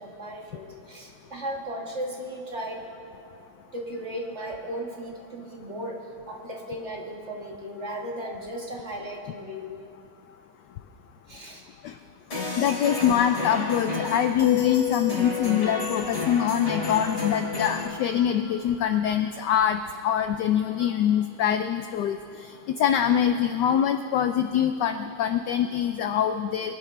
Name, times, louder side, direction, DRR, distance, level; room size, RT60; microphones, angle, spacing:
voice 1, 0.0-2.8 3.7-6.0 6.3-9.7 11.3-11.6, right 1 dB, 35° right, -1 dB, 1.6 m, -36 dB
sound 1, 12.3-17.9, left 5 dB, 50° left, 3.7 m, -30 dB
voice 2, 12.6-22.2 22.8-26.7, left 9 dB, 80° left, 8 dB, 0.9 m, -24 dB
24.0 x 11.0 x 3.3 m, 2.5 s
omnidirectional pair, 2.3 m